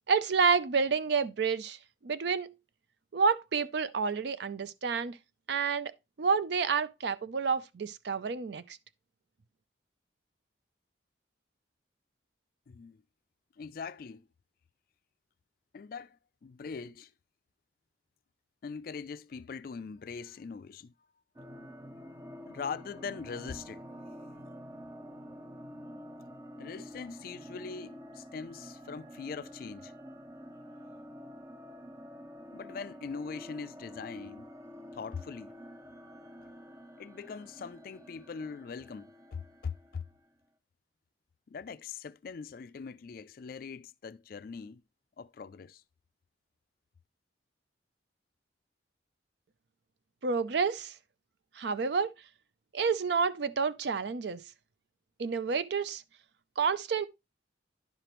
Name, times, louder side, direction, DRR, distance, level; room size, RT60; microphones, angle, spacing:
voice 1, 0.1-1.8 2.0-2.5 3.1-5.2 5.5-5.9 6.2-8.8 50.2-50.9 51.6-52.1 52.7-54.4 55.2-56.0 56.6-57.0, right 5 dB, 60° right, 0.5 m, -29 dB
voice 2, 12.7-13.0 13.6-14.2 15.7-17.1 18.6-20.9 22.5-23.8 26.6-29.9 32.5-34.5 34.9-35.6 37.0-40.0 41.5-44.8 45.2-45.8, left 5 dB, 50° left, 0.3 m, -42 dB
sound 1, 21.4-40.3, equal, 15° right, 0.6 m, -48 dB
11.0 x 5.0 x 3.0 m
head